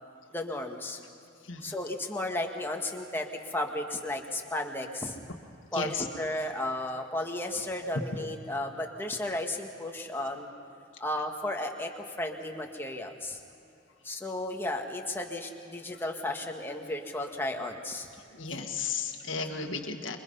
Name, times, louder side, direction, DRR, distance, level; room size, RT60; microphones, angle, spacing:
voice 1, 0.3-1.0 1.6-5.2 5.7-10.5 11.0-13.4 14.0-18.1, left 1 dB, 10° left, 2 dB, 1.7 m, -34 dB
voice 2, 1.4-1.8 5.7-6.1 18.3-20.2, left 5 dB, 80° left, 3 dB, 1.7 m, -34 dB
27.0 x 23.5 x 5.6 m, 2.7 s
head